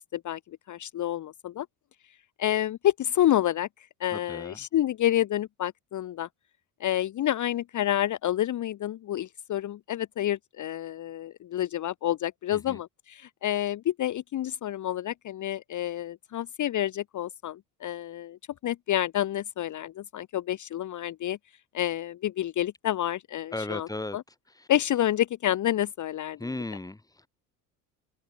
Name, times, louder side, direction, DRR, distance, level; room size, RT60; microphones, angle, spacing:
voice 1, 0.7-1.7 2.4-3.7 4.0-6.3 6.8-21.4 21.7-23.9 24.1-24.2 24.7-26.4, left 12 dB, 40° left, 1.1 m, -29 dB
voice 2, 4.1-4.7 12.5-12.8 23.5-24.2 24.5-24.7 26.4-27.3, left 2 dB, 5° left, 2.1 m, -36 dB
hypercardioid pair, 65°, 48 cm